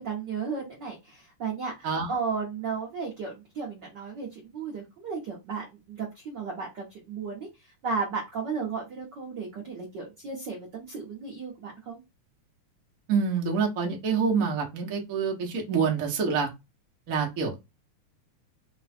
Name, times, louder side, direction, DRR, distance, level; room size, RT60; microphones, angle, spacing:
voice 1, 0.0-7.5 7.8-12.0, right 5 dB, 65° right, 1.1 m, -34 dB
voice 2, 13.1-16.5 17.1-17.6, right 5 dB, 85° right, 0.7 m, -26 dB
5.4 x 2.3 x 4.2 m
omnidirectional pair, 3.6 m